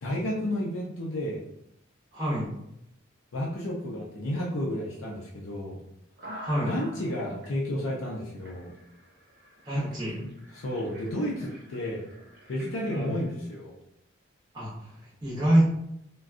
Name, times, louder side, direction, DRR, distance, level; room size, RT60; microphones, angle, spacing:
voice 1, 0.0-1.4 3.3-5.8 6.6-8.7 9.7-9.9 10.2-12.0 12.5-13.8, left 1 dB, 70° left, -3 dB, 0.5 m, -32 dB
voice 2, 2.1-2.5 6.4-6.7 9.6-10.2 12.9-13.1 14.5-14.9 15.2-15.6, right 1 dB, 20° right, -7 dB, 0.7 m, -26 dB
sound 1, 6.2-7.5 8.1-8.2 8.4-13.3, equal, 50° right, 0.8 m, -47 dB
3.6 x 2.2 x 2.4 m, 0.78 s
head